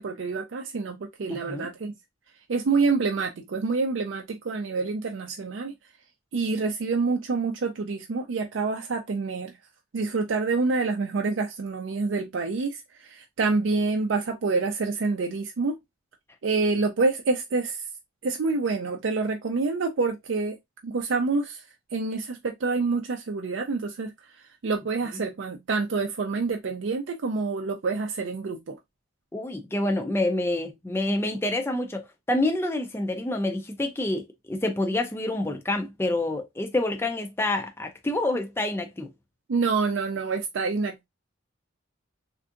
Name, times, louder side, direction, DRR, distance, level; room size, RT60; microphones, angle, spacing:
voice 1, 0.0-1.9 2.5-5.7 6.3-9.5 9.9-15.8 16.4-17.9 18.2-20.6 20.8-21.6 21.9-24.1 24.6-28.8 39.5-41.1, right 4 dB, 65° right, 0.4 m, -27 dB
voice 2, 1.3-1.7 29.3-39.1, left 2 dB, 10° left, 0.4 m, -27 dB
3.5 x 2.6 x 2.4 m
head